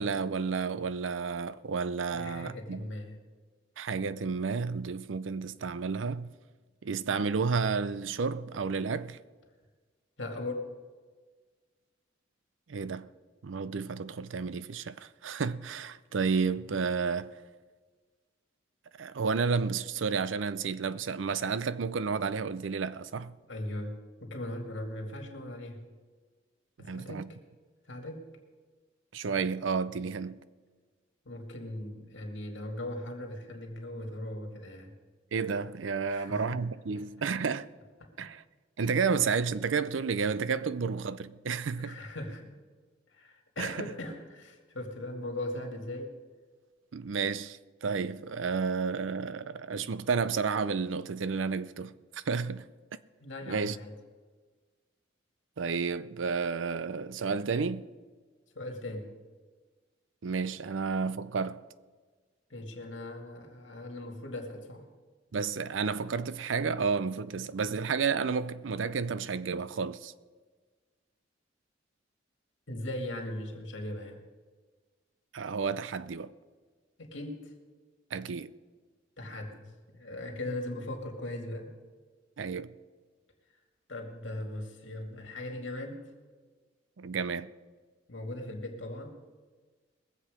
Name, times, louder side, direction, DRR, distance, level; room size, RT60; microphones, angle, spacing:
voice 1, 0.0-2.9 3.8-6.3 6.8-9.2 12.7-13.1 13.4-17.3 19.0-23.3 26.8-27.3 29.1-30.4 35.3-37.7 38.2-38.4 38.8-42.0 43.6-43.9 46.9-52.7 53.5-53.8 55.6-57.9 60.2-61.6 65.3-70.1 75.3-76.3 78.1-78.5 82.4-82.7 87.0-87.5, right 5 dB, 85° right, 0.5 m, -31 dB
voice 2, 2.1-3.2 10.2-10.7 23.5-25.8 26.8-27.2 27.9-28.2 31.3-34.9 36.1-36.6 36.9-37.0 38.0-38.3 38.8-38.9 41.8-42.5 43.1-46.1 53.2-53.9 58.6-59.1 62.5-64.9 72.7-74.2 77.0-77.5 79.2-81.7 83.9-86.1 88.1-89.2, left 1 dB, 80° left, 2.2 m, -39 dB
21.5 x 7.7 x 5.0 m
head